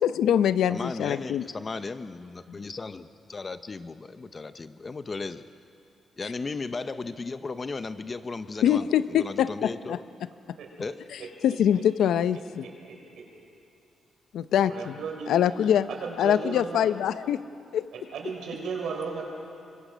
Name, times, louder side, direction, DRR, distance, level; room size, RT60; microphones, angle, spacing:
voice 1, 0.0-1.4 2.5-2.6 8.6-10.0 11.4-12.7 14.3-15.0 15.3-15.9 16.2-17.4 17.7-17.8, left 9 dB, 80° left, 14 dB, 0.6 m, -24 dB
voice 2, 0.7-5.5 6.2-10.0 10.8-11.0, left 3 dB, 25° left, 11 dB, 0.6 m, -36 dB
voice 3, 14.6-15.3 16.0-16.8 17.9-19.2, right 5 dB, 70° right, 1 dB, 5.0 m, -34 dB
24.0 x 22.5 x 6.2 m, 2.5 s
cardioid pair, 160°, 0 cm